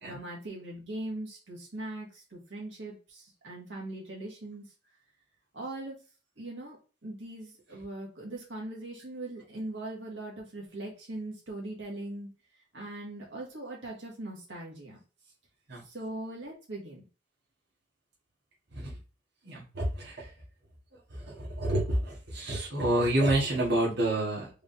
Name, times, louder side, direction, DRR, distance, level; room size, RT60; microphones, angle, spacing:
voice 1, 0.1-4.7 5.5-6.0 6.4-6.8 7.0-12.3 12.7-15.0 15.9-17.0, right 1 dB, 80° right, -2 dB, 1.8 m, -40 dB
voice 2, 19.4-20.3 21.3-24.5, right 1 dB, 65° right, -5 dB, 1.6 m, -28 dB
4.9 x 3.5 x 2.6 m, 0.34 s
head